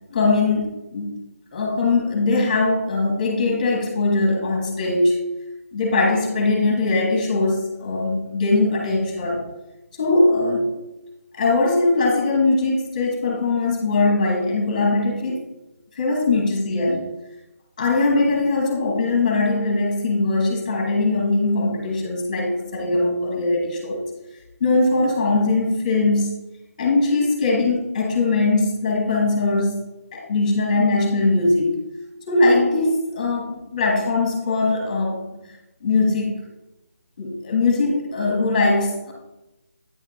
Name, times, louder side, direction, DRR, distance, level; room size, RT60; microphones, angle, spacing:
voice 1, 0.1-1.1 1.5-5.3 5.7-9.4 10.0-10.8 11.3-15.4 16.0-17.1 17.8-24.0 24.6-26.4 26.8-29.8 30.1-31.8 32.3-35.3 35.8-36.4 37.2-39.1, left 3 dB, 25° left, 0 dB, 1.2 m, -21 dB
8.6 x 4.6 x 2.3 m, 0.96 s
figure-of-eight pair, 170°, 8 cm